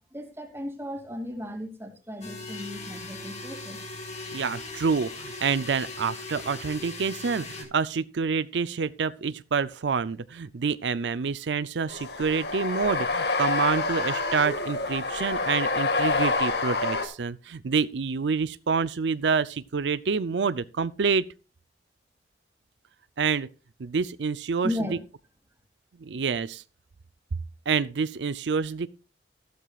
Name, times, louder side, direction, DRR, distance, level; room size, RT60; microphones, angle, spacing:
voice 1, 0.1-3.9 24.6-25.0, left 1 dB, 15° right, 2.6 m, -35 dB
sound 1, 2.2-7.6, left 3 dB, 40° left, 4.6 m, -39 dB
voice 2, 4.3-21.3 23.2-23.5 23.8-24.7 26.0-26.6 27.7-28.9, right 5 dB, 85° right, 0.5 m, -27 dB
sound 2, 11.9-17.0, left 3 dB, 70° left, 1.8 m, -27 dB
14.5 x 12.5 x 2.4 m
head